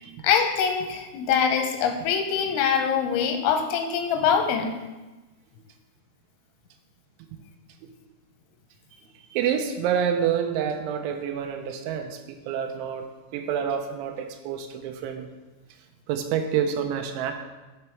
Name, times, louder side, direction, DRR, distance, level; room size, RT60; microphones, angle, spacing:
voice 1, 0.2-4.7, left 7 dB, 90° left, 4 dB, 3.3 m, -23 dB
voice 2, 9.3-15.3 16.1-17.3, right 8 dB, 90° right, 6 dB, 3.1 m, -28 dB
10.5 x 4.3 x 4.5 m, 1.1 s
omnidirectional pair, 5.4 m